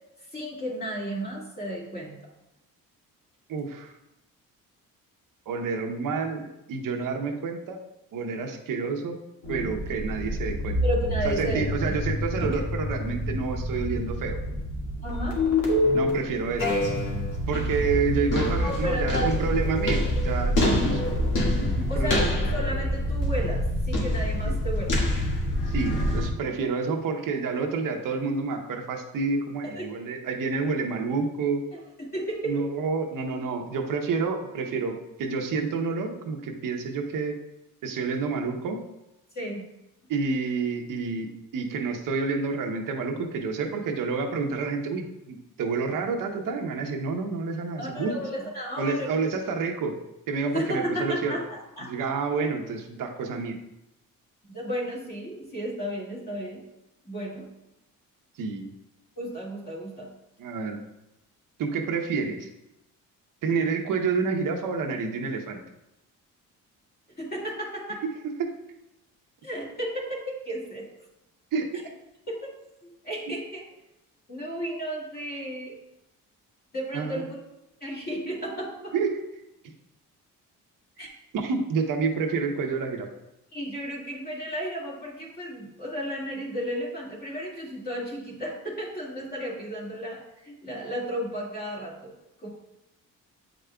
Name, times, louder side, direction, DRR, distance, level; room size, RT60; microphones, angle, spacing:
voice 1, 0.3-2.2 10.8-12.0 12.4-12.5 15.0-15.4 18.6-19.3 21.9-24.9 29.6-29.8 31.7-32.7 39.3-39.6 47.8-49.1 50.5-51.9 54.5-56.6 57.0-57.5 59.2-60.1 67.2-68.0 69.4-70.9 72.3-72.4 72.8-73.7 74.3-75.8 76.7-77.4 77.8-79.0 81.0-81.1 83.5-92.5, equal, 30° left, -4 dB, 2.1 m, -33 dB
voice 2, 3.5-3.9 5.5-7.8 8.1-9.2 9.5-10.8 11.2-14.4 15.9-16.8 17.5-21.0 21.6-22.1 24.4-24.6 25.7-31.6 32.4-37.4 37.8-38.8 40.1-48.5 48.8-49.9 50.3-51.4 51.8-53.6 58.4-58.7 60.4-60.8 61.6-62.5 63.4-65.6 68.4-68.5 71.5-71.8 73.3-73.4 76.9-77.3 78.9-79.2 81.3-83.1, right 4 dB, 70° right, 3 dB, 0.9 m, -29 dB
sound 1, 9.4-26.3, left 1 dB, 65° left, 1.8 m, -26 dB
8.5 x 5.0 x 2.3 m, 0.90 s
cardioid pair, 95°, 34 cm